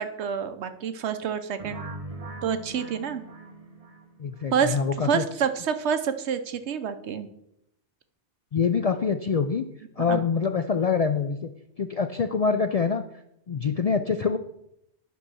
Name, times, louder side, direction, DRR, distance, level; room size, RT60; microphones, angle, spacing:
voice 1, 0.0-1.8 2.4-3.2 4.5-4.8 5.0-7.3 10.1-10.2, right 7 dB, 75° right, 10 dB, 1.0 m, -27 dB
sound 1, 1.6-4.5, right 2 dB, 30° right, 1.4 m, -40 dB
voice 2, 4.2-5.2 8.5-9.6 10.0-11.4 11.8-13.0 13.5-14.4, left 5 dB, 60° left, 8 dB, 0.4 m, -25 dB
9.1 x 5.5 x 6.1 m, 0.79 s
omnidirectional pair, 1.2 m